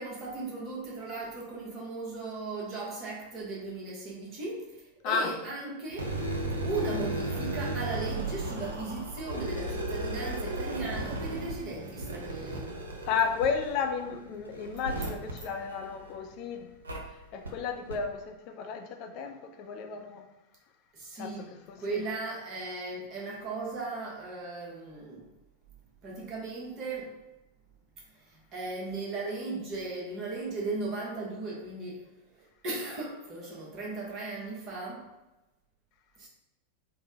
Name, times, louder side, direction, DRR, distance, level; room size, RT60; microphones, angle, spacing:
voice 1, 0.0-6.1 6.6-12.8 20.9-21.5 21.8-25.3 26.0-27.2 28.1-32.1 32.3-35.0 36.2-36.3, right 3 dB, 35° right, 1.0 m, -37 dB
sound 1, 5.9-16.3 16.9-17.0 17.5-17.6 17.9-18.0, right 1 dB, 75° right, 0.5 m, -35 dB
voice 2, 13.1-16.7 17.3-20.3 21.2-22.0, left 6 dB, 40° left, 0.3 m, -33 dB
3.3 x 2.1 x 2.7 m
figure-of-eight pair, 90°, 0 cm